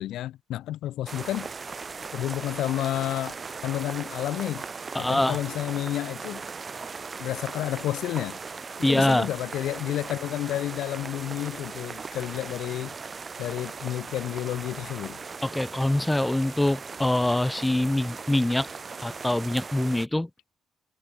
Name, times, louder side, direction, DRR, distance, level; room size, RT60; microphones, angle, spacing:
voice 1, 0.0-1.5 2.1-3.4 3.6-4.7 5.0-6.4 7.2-8.4 8.8-12.9 13.4-15.2, left 13 dB, 85° left, 0.6 m, -30 dB
sound 1, 1.1-20.1, right 5 dB, 35° right, 1.8 m, -38 dB
sound 2, 2.5-14.9, right 9 dB, 65° right, 4.3 m, -58 dB
voice 2, 4.9-5.4 8.8-9.3 15.4-18.7 19.0-20.3, left 1 dB, 10° left, 1.1 m, -24 dB
cardioid pair, 90°, 0 cm